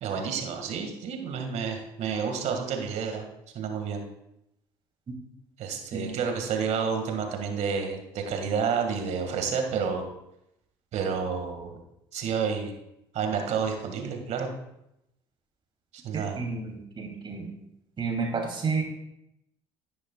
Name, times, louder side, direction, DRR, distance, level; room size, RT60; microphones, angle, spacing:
voice 1, 0.0-3.3 3.6-4.0 5.6-10.0 10.9-11.8 12.1-12.7 13.1-14.5 15.9-16.4, right 6 dB, 60° right, 4 dB, 1.7 m, -30 dB
voice 2, 16.1-17.5 18.0-18.8, right 4 dB, 40° right, 2 dB, 2.6 m, -31 dB
11.0 x 9.6 x 2.3 m, 0.83 s
hypercardioid pair, 65°, 13 cm